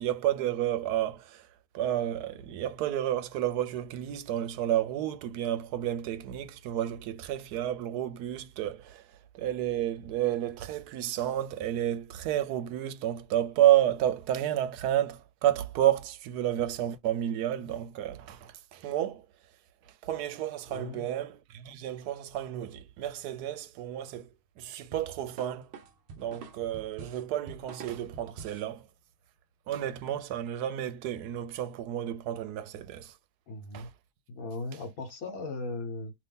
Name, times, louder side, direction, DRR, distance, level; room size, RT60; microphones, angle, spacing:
voice 1, 0.0-1.5 1.7-9.0 9.3-19.2 20.0-24.3 24.6-25.7 26.2-28.9 29.7-33.1 33.7-33.9, right 12 dB, 80° right, 1.1 m, -30 dB
voice 2, 20.7-21.1 33.5-33.9 34.3-36.1, left 2 dB, 65° left, 1.5 m, -38 dB
sound 1, 24.9-28.7, right 5 dB, 60° right, 0.7 m, -46 dB
2.8 x 2.7 x 3.4 m
omnidirectional pair, 1.7 m